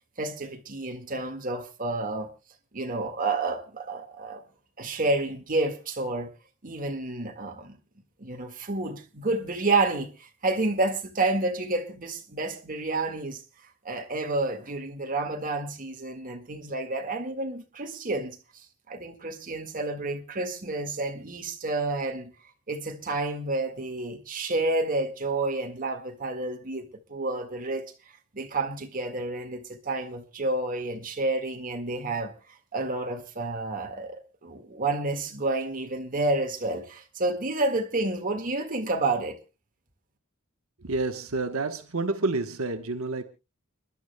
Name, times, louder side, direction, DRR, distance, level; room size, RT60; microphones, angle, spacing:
voice 1, 0.2-2.3 2.7-4.4 4.8-6.3 6.6-7.8 8.2-13.4 13.8-18.4 18.9-22.3 22.7-27.9 28.3-39.4, right 2 dB, 40° right, 1.8 m, -30 dB
voice 2, 40.8-43.2, right 3 dB, 75° right, 1.1 m, -29 dB
29.5 x 11.5 x 2.2 m
head